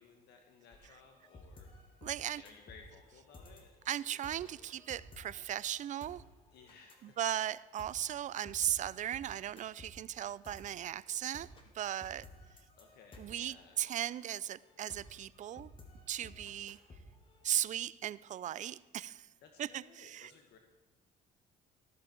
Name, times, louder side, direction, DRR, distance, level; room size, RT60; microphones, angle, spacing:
voice 1, 0.0-1.7 2.3-3.7 4.4-4.8 6.5-7.2 12.8-13.8 16.2-16.5 19.4-20.6, left 5 dB, 75° left, 1.7 m, -59 dB
sound 1, 0.7-17.6, left 2 dB, 30° left, 2.6 m, -56 dB
voice 2, 2.0-2.4 3.9-6.2 7.0-11.5 11.7-12.3 13.2-15.7 16.1-16.8 17.4-19.3 19.6-20.3, right 11 dB, 45° right, 0.4 m, -37 dB
14.5 x 14.0 x 4.5 m
cardioid pair, 110°, 17 cm